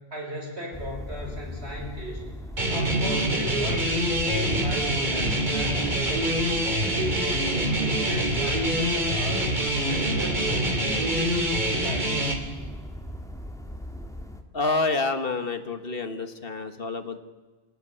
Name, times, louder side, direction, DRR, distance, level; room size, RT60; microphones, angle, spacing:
voice 1, 0.1-2.2 2.7-6.4 6.7-9.6 9.9-12.4, equal, 80° right, 1 dB, 6.3 m, -37 dB
sound 1, 0.7-14.4, left 1 dB, 5° left, 1.9 m, -38 dB
sound 2, 2.6-12.3, right 1 dB, 45° right, 2.9 m, -25 dB
voice 2, 14.5-17.2, left 3 dB, 60° left, 9 dB, 1.7 m, -28 dB
27.0 x 16.5 x 9.9 m, 1.3 s
omnidirectional pair, 1.1 m